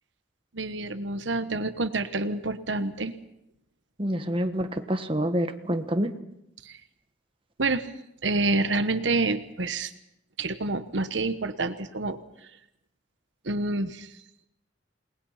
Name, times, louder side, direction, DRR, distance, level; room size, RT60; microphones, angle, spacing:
voice 1, 0.5-3.1 6.6-6.8 7.6-7.8 8.2-9.9 10.4-12.2 13.4-14.1, right 2 dB, 75° right, 10 dB, 1.2 m, -27 dB
voice 2, 4.0-6.1, equal, 30° right, 7 dB, 1.5 m, -27 dB
29.0 x 20.0 x 5.7 m, 0.83 s
head